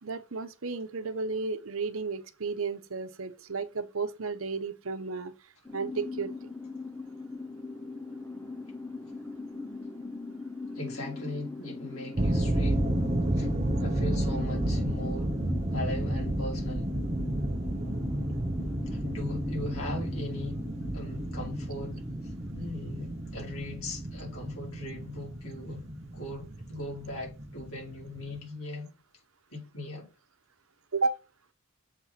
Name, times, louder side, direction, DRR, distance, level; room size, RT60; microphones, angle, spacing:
voice 1, 0.0-5.3 5.7-6.5 30.9-31.2, right 4 dB, 65° right, 0.9 m, -33 dB
sound 1, 5.6-25.2, left 3 dB, 10° left, 0.6 m, -40 dB
voice 2, 10.7-12.9 13.3-13.5 13.8-15.4 15.7-16.9 18.8-20.6 20.9-28.9 29.5-30.1, left 1 dB, 70° left, 4.6 m, -39 dB
sound 2, 12.2-28.4, right 1 dB, 30° right, 0.8 m, -32 dB
7.4 x 4.4 x 5.8 m
head